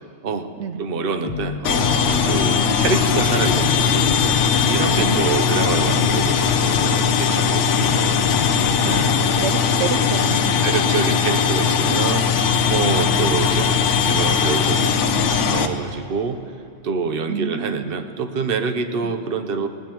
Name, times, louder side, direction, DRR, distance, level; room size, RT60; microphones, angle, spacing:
voice 1, 0.8-4.0 4.7-8.2 8.8-9.2 10.6-16.4 16.8-19.7, right 5 dB, 55° right, 6 dB, 1.0 m, -26 dB
sound 1, 1.2-2.8 3.2-5.0 5.5-7.1 7.8-9.3, left 7 dB, 65° left, 0.8 m, -30 dB
sound 2, 1.6-15.7, left 6 dB, 85° left, 1.1 m, -19 dB
voice 2, 5.0-5.6 8.8-10.8 12.9-13.2 17.3-17.9 19.0-19.1, right 7 dB, 80° right, 8 dB, 0.9 m, -29 dB
19.0 x 18.5 x 3.0 m, 2.8 s
omnidirectional pair, 1.2 m